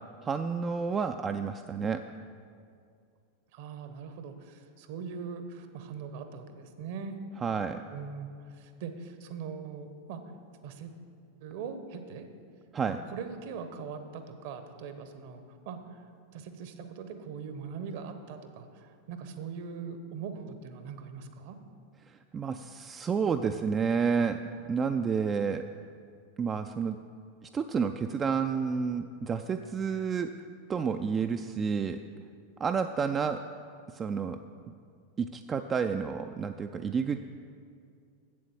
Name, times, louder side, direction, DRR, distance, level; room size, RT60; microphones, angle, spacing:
voice 1, 0.2-2.0 7.4-7.8 12.7-13.0 22.1-25.6 26.4-27.0 27.4-30.3 30.7-32.0 32.6-33.4 33.9-34.4 35.2-37.2, right 6 dB, 20° right, 7 dB, 0.3 m, -30 dB
voice 2, 3.5-7.2 7.9-10.2 10.6-10.9 11.4-12.3 12.9-16.0 16.3-21.6, right 6 dB, 50° right, 8 dB, 0.9 m, -41 dB
7.8 x 7.7 x 7.0 m, 2.4 s
figure-of-eight pair, 90°, 0 cm